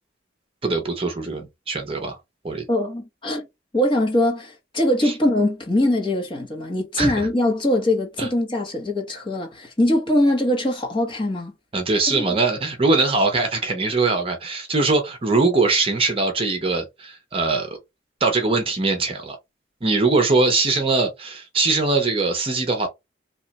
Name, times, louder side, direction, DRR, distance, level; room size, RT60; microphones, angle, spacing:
voice 1, 0.6-2.2 2.4-2.6 5.0-5.1 7.0-7.1 8.2-8.3 11.7-17.8 18.2-19.4 19.8-22.9, right 3 dB, 30° right, 0.7 m, -21 dB
voice 2, 2.7-3.5 3.7-11.5 12.1-12.3, left 1 dB, 25° left, 1.0 m, -22 dB
2.9 x 2.3 x 4.0 m
head